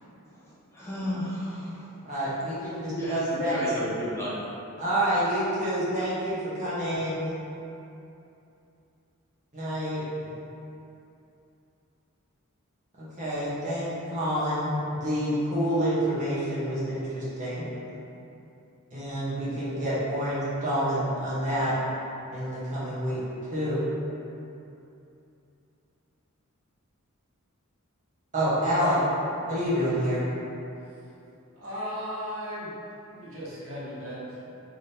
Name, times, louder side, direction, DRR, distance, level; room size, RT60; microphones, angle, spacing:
voice 1, 0.3-1.9 3.0-4.3, equal, 10° left, -10 dB, 0.7 m, -33 dB
voice 2, 2.0-3.5 4.8-7.4 9.5-10.0 13.0-17.7 18.9-21.7 22.3-23.2 23.5-23.9 28.3-29.0 29.4-30.3, equal, 35° right, -11 dB, 1.3 m, -28 dB
voice 3, 31.5-32.7 33.1-34.5, equal, 70° right, -8 dB, 0.9 m, -36 dB
3.6 x 3.4 x 2.8 m, 2.7 s
head